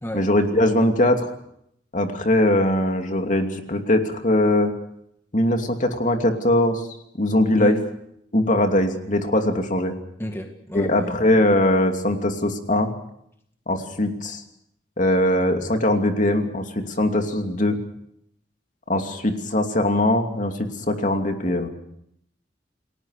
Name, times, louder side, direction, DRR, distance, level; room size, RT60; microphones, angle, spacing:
voice 1, 0.1-1.3 1.9-4.7 5.3-6.9 7.2-7.8 8.3-9.9 10.7-12.9 13.7-14.4 15.0-17.8 18.9-20.5 20.9-21.7, left 1 dB, 45° left, 4 dB, 2.8 m, -21 dB
voice 2, 10.2-11.2, equal, 15° left, 4 dB, 2.0 m, -31 dB
29.5 x 19.0 x 6.6 m, 0.73 s
head